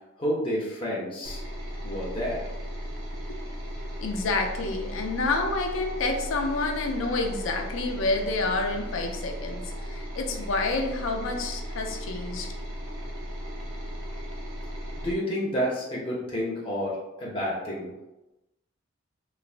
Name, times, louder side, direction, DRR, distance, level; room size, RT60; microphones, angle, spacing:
voice 1, 0.2-1.4 1.8-2.4 15.0-17.9, equal, 25° left, -5 dB, 0.5 m, -30 dB
sound 1, 1.2-15.1, equal, 80° right, 0.6 m, -36 dB
voice 2, 4.0-12.5, left 3 dB, 70° left, 3 dB, 0.4 m, -29 dB
3.2 x 2.0 x 2.4 m, 0.98 s
head